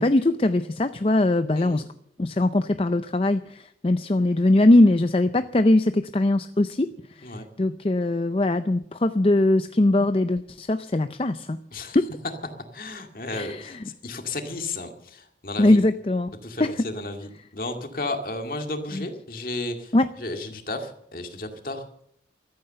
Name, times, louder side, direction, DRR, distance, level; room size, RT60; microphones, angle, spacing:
voice 1, 0.0-1.8 2.2-11.6 11.9-12.1 13.3-13.8 15.6-16.3 16.6-16.9 18.9-19.1 19.9-20.1, left 2 dB, 30° left, 10 dB, 0.5 m, -21 dB
voice 2, 12.7-15.8 16.4-19.9 20.2-21.9, left 2 dB, 50° left, 5 dB, 2.2 m, -33 dB
14.5 x 13.5 x 6.7 m, 0.68 s
head